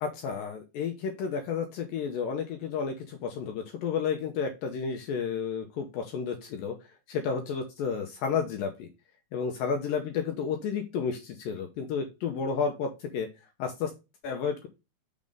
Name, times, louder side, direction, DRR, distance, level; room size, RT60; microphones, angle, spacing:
voice 1, 0.0-6.8 7.1-8.9 9.3-13.3 13.6-13.9 14.2-14.7, left 6 dB, 75° left, 3 dB, 2.1 m, -31 dB
6.3 x 3.6 x 5.3 m, 0.26 s
omnidirectional pair, 4.8 m